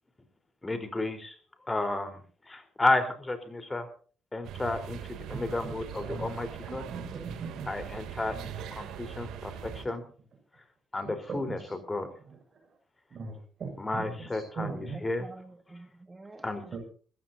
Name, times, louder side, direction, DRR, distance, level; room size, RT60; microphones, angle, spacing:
voice 1, 0.6-1.4 1.6-3.9 4.3-6.8 7.7-10.0 10.5-10.6 10.9-12.1 13.8-15.3 16.4-16.8, left 2 dB, 20° left, 8 dB, 3.9 m, -32 dB
sound 1, 4.4-9.8, right 9 dB, 85° right, 2.7 m, -41 dB
voice 2, 5.3-5.7 6.0-6.2 6.6-7.7 8.3-8.4 11.0-11.5 12.3-12.4 13.1-14.1 14.5-15.0 16.7-16.8, right 4 dB, 50° right, 1 dB, 6.4 m, -39 dB
voice 3, 14.7-16.8, right 2 dB, 20° right, 6 dB, 2.0 m, -48 dB
22.5 x 15.0 x 2.7 m, 0.42 s
cardioid pair, 90°, 0 cm